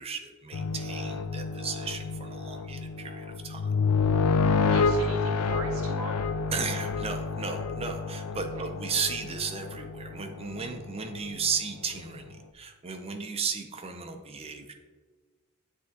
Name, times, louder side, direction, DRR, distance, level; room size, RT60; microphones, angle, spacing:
voice 1, 0.0-3.7 5.0-5.1 6.5-14.7, right 5 dB, 25° right, 6 dB, 0.5 m, -35 dB
sound 1, 0.5-10.7 11.1-11.3 12.0-12.1, left 4 dB, 80° left, 0.4 m, -29 dB
voice 2, 4.6-6.2 8.4-8.7, right 2 dB, 70° right, 2 dB, 0.7 m, -40 dB
9.5 x 3.5 x 2.8 m, 1.4 s
head